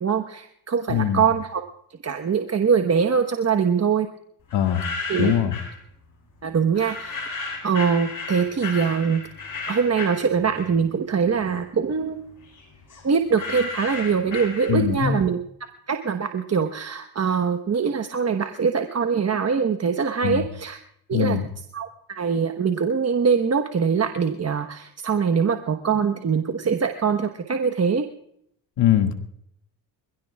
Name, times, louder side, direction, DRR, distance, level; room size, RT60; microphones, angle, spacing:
voice 1, 0.0-1.6 2.0-4.1 5.1-5.3 6.4-7.3 7.6-9.2 9.7-12.2 13.0-15.4 15.9-20.8 21.1-21.4 21.7-28.1, right 6 dB, 35° right, 6 dB, 1.2 m, -23 dB
voice 2, 0.9-1.2 4.5-4.8 5.2-5.5 14.7-15.2 20.2-20.4 21.1-21.5 28.8-29.1, left 10 dB, 70° left, 5 dB, 2.1 m, -21 dB
sound 1, 4.5-5.8 6.7-11.0 11.3-15.1, left 4 dB, 45° left, 7.5 m, -34 dB
25.5 x 16.5 x 2.4 m, 0.71 s
supercardioid pair, 65°, 44 cm